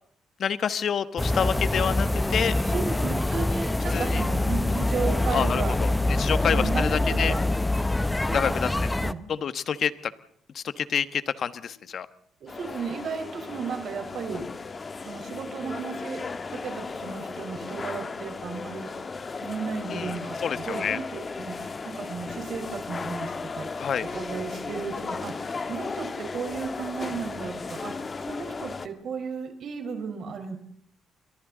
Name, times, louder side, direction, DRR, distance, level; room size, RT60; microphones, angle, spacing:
voice 1, 0.4-2.5 3.9-4.2 5.3-7.3 8.3-8.7 9.3-10.1 10.5-12.1 19.9-21.0 23.8-24.1, left 7 dB, 55° left, 13 dB, 1.3 m, -28 dB
sound 1, 1.2-9.1, left 2 dB, 10° left, 0.9 m, -25 dB
voice 2, 2.6-5.8 6.4-7.4 8.3-9.2 12.4-14.4 15.0-16.2 16.5-18.9 19.4-27.9 28.3-30.6, right 5 dB, 60° right, 6 dB, 4.5 m, -34 dB
sound 2, 12.5-28.9, left 4 dB, 35° left, 1.4 m, -35 dB
30.0 x 23.0 x 3.9 m, 0.64 s
cardioid pair, 90°, 0 cm